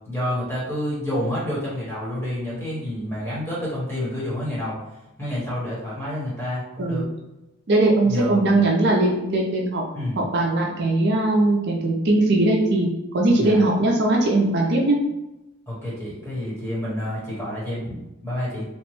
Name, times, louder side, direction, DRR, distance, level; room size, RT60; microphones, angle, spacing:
voice 1, 0.1-4.8 5.2-7.1 8.0-8.5 9.9-10.2 13.3-13.6 15.7-18.6, left 1 dB, 10° left, -8 dB, 1.0 m, -29 dB
voice 2, 7.7-9.8 10.2-12.9 13.1-15.0, right 2 dB, 50° right, -1 dB, 0.5 m, -20 dB
2.9 x 2.1 x 3.0 m, 0.93 s
head